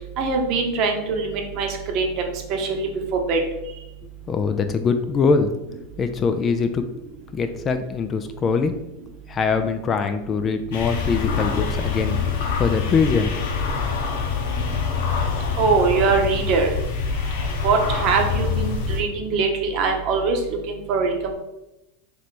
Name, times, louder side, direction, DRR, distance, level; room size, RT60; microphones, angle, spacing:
voice 1, 0.2-3.4 15.6-16.7 17.6-21.3, right 4 dB, 50° right, 3 dB, 0.8 m, -22 dB
voice 2, 4.3-5.5 6.0-6.8 7.3-8.7 9.3-12.2 12.6-13.3, left 5 dB, 25° left, 8 dB, 0.3 m, -22 dB
sound 1, 10.7-19.0, left 5 dB, 75° left, 0.8 m, -25 dB
3.2 x 3.1 x 4.1 m, 0.92 s
supercardioid pair, 135°, 0 cm